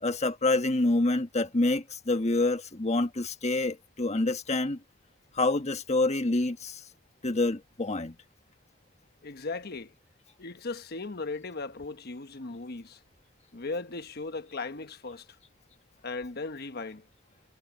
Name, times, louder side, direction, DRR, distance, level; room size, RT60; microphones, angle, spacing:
voice 1, 0.0-4.8 5.3-6.8 7.2-8.1, left 2 dB, 35° left, 1.5 m, -27 dB
voice 2, 9.2-9.9 10.4-13.0 13.5-15.3 16.0-17.1, left 3 dB, 55° left, 1.2 m, -37 dB
head